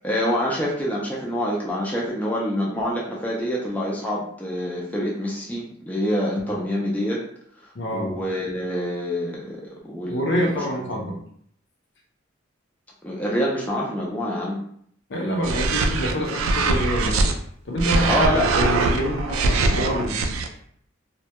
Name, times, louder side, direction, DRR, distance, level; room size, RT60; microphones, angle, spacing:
voice 1, 0.0-7.2 7.9-10.6 13.0-14.6 18.1-18.5, equal, 5° left, -4 dB, 0.4 m, -26 dB
voice 2, 7.7-8.1 10.1-11.2 15.1-17.3 17.6-20.3, equal, 60° left, 0 dB, 0.5 m, -26 dB
sound 1, 15.4-17.3 17.8-20.5, right 3 dB, 85° right, 0.3 m, -22 dB
2.2 x 2.1 x 2.8 m, 0.64 s
head